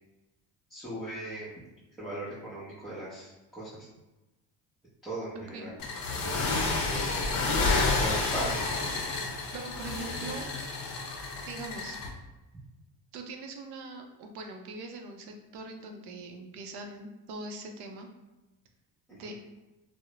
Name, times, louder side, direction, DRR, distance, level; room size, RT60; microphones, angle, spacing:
voice 1, 0.7-1.5 2.0-3.9 5.0-5.7 6.8-7.4 7.8-9.0 19.2-19.3, right 1 dB, ahead, -11 dB, 0.6 m, -38 dB
voice 2, 5.3-5.8 9.5-10.5 11.5-12.0 13.1-18.1 19.1-19.3, right 3 dB, 60° right, 4 dB, 0.5 m, -42 dB
sound 1, 5.8-12.1, left 3 dB, 50° left, 0.6 m, -30 dB
2.4 x 2.0 x 2.9 m, 1.1 s
cardioid pair, 110°, 45 cm